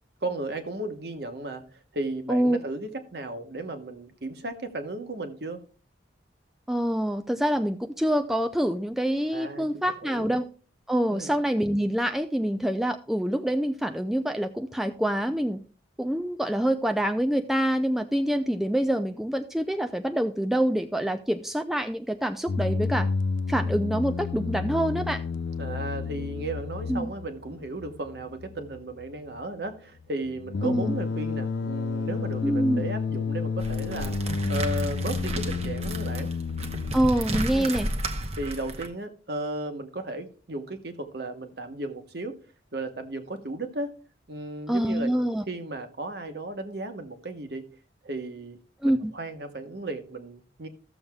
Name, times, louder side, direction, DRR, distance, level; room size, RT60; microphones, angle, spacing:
voice 1, 0.2-5.6 9.3-9.7 10.0-10.3 11.1-11.3 25.6-34.1 34.5-36.3 37.5-37.8 38.4-42.3 42.7-43.9 44.3-45.1 45.5-47.6 48.0-48.6 48.8-50.7, right 2 dB, 55° right, 1.1 m, -35 dB
voice 2, 6.7-10.4 10.9-15.6 16.0-23.1 23.5-25.2 26.9-27.1 30.6-31.0 32.4-32.8 36.9-37.9 44.7-45.4 48.8-49.1, equal, ahead, 0.3 m, -26 dB
sound 1, 22.5-37.0, left 4 dB, 80° left, 0.4 m, -31 dB
sound 2, 33.6-38.9, right 1 dB, 35° right, 0.9 m, -33 dB
15.5 x 7.1 x 2.3 m
head